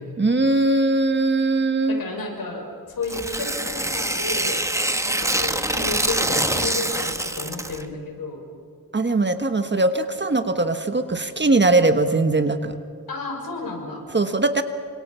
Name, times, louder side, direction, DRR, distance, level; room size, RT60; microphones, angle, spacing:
voice 1, 0.2-2.0 8.9-12.7 14.1-14.6, right 2 dB, 30° right, 8 dB, 1.4 m, -20 dB
voice 2, 1.9-4.6 5.0-8.4 13.1-14.0, left 3 dB, 65° left, 2 dB, 6.3 m, -32 dB
Tearing, 3.0-7.8, right 1 dB, 10° right, 1.3 m, -25 dB
30.0 x 25.5 x 5.7 m, 2.3 s
wide cardioid pair, 105°, 38 cm